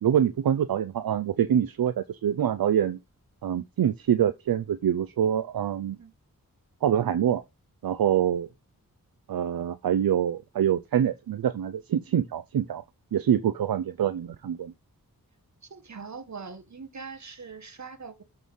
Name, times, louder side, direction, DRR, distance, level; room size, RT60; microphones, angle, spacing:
voice 1, 0.0-3.0 3.4-6.0 6.8-7.4 7.8-8.5 9.3-12.8 13.1-14.7, right 9 dB, 75° right, 0.6 m, -25 dB
voice 2, 15.7-18.2, right 5 dB, 50° right, 1.5 m, -42 dB
7.0 x 4.0 x 6.3 m
cardioid pair, 50°, 36 cm